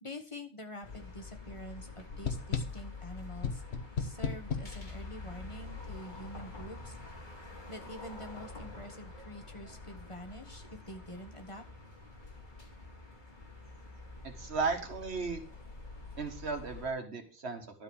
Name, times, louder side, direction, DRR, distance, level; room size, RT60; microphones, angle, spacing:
voice 1, 0.0-3.6 4.0-6.9 7.7-11.6, equal, 30° left, 4 dB, 1.3 m, -46 dB
sound 1, 0.8-16.9, left 3 dB, 50° left, 2.4 m, -47 dB
sound 2, 2.1-2.9 3.4-4.8, left 5 dB, 85° left, 1.4 m, -35 dB
voice 2, 14.2-15.4 16.2-17.8, right 4 dB, 85° right, 4 dB, 2.0 m, -35 dB
12.0 x 4.9 x 7.0 m, 0.38 s
omnidirectional pair, 1.1 m